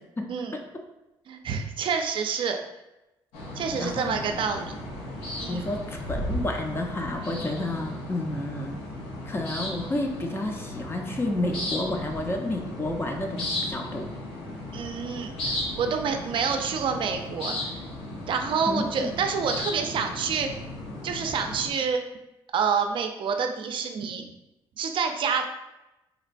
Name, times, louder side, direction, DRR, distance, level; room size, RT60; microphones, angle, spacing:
voice 1, 0.2-0.6 3.8-4.2 5.5-8.8 9.3-14.1 18.7-19.1, left 1 dB, 25° left, 3 dB, 0.5 m, -30 dB
voice 2, 1.3-2.6 3.6-4.7 5.4-5.6 14.7-17.5 18.3-20.5 21.0-22.0 22.5-24.3 24.8-25.5, right 6 dB, 55° right, 6 dB, 0.4 m, -28 dB
sound 1, 3.3-21.7, left 1 dB, 90° left, 0.7 m, -35 dB
3.9 x 2.1 x 2.5 m, 0.97 s
cardioid pair, 90°, 10 cm